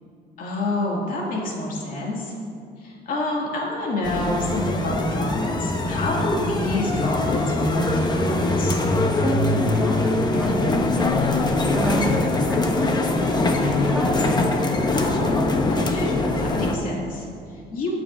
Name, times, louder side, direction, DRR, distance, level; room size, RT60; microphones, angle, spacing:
voice 1, 0.4-2.3 2.8-8.8 14.9-18.0, left 1 dB, 55° left, -3 dB, 2.5 m, -28 dB
sound 1, 4.0-16.8, left 2 dB, 25° left, 1.0 m, -22 dB
voice 2, 9.2-11.4 11.7-12.9 13.2-14.2, right 1 dB, 5° right, -4 dB, 1.9 m, -30 dB
21.5 x 7.7 x 2.7 m, 2.4 s
cardioid pair, 110°, 17 cm